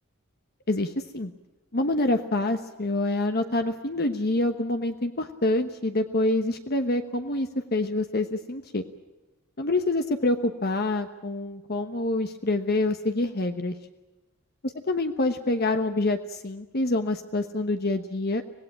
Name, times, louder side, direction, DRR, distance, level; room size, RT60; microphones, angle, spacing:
voice 1, 0.7-1.3 1.7-8.8 9.6-13.7 14.9-18.4, left 2 dB, 45° left, 7 dB, 1.1 m, -26 dB
25.5 x 18.5 x 8.9 m, 1.1 s
head